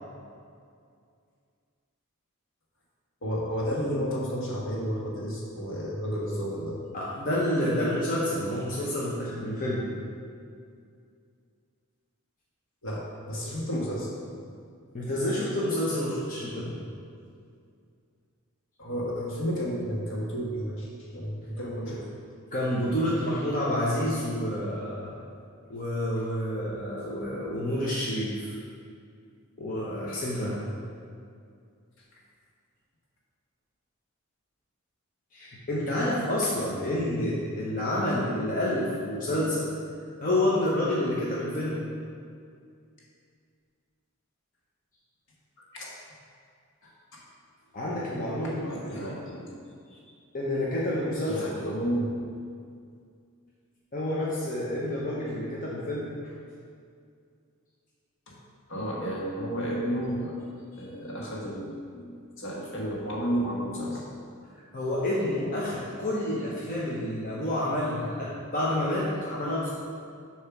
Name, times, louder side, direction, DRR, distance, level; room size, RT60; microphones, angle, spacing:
voice 1, 3.2-6.8 12.8-14.1 18.8-22.1 45.7-45.9 46.8-47.2 48.3-49.5 49.9-50.2 51.3-52.1 58.7-64.0, equal, 65° left, -4 dB, 1.4 m, -32 dB
voice 2, 6.9-9.9 14.9-16.7 21.9-22.0 22.5-25.1 25.7-28.6 29.6-30.6 35.3-39.7 40.2-41.8 47.7-49.2 50.3-51.7 53.9-56.1 64.7-69.7, left 1 dB, 40° left, -6 dB, 0.9 m, -29 dB
6.7 x 3.1 x 5.9 m, 2.3 s
head